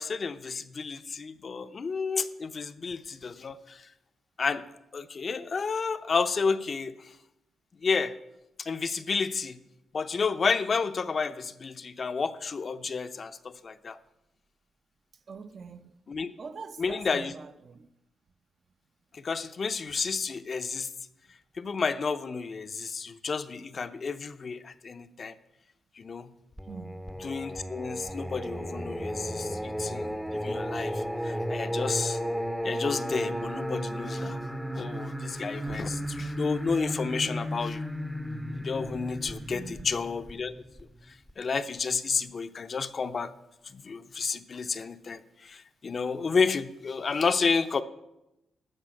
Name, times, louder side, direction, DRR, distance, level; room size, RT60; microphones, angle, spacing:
voice 1, 0.0-3.9 4.4-4.6 4.9-6.9 7.8-8.1 8.6-9.6 9.9-14.0 16.1-16.3 16.8-17.3 19.1-20.9 21.6-25.3 26.0-26.3 27.2-32.2 32.6-34.4 34.8-37.8 38.6-40.5 41.4-43.3 43.7-47.8, left 5 dB, 45° left, 0.6 m, -31 dB
voice 2, 15.3-16.0 16.4-17.9 26.7-27.1 39.5-39.9, right 5 dB, 55° right, 0.6 m, -44 dB
Singing, 26.6-41.3, equal, ahead, 0.6 m, -34 dB
12.0 x 4.8 x 7.3 m
cardioid pair, 85°, 0 cm